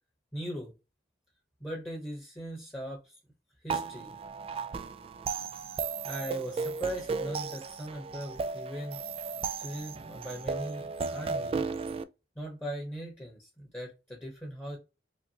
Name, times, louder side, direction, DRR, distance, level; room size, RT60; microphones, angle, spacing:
voice 1, 0.3-0.7 1.6-3.2 3.6-4.1 5.5-5.8 6.0-9.0 9.6-11.6 12.3-14.8, equal, 10° left, 1.1 m, -39 dB
sound 1, 3.7-12.0, right 4 dB, 30° right, 0.3 m, -35 dB
5.1 x 2.3 x 2.8 m
head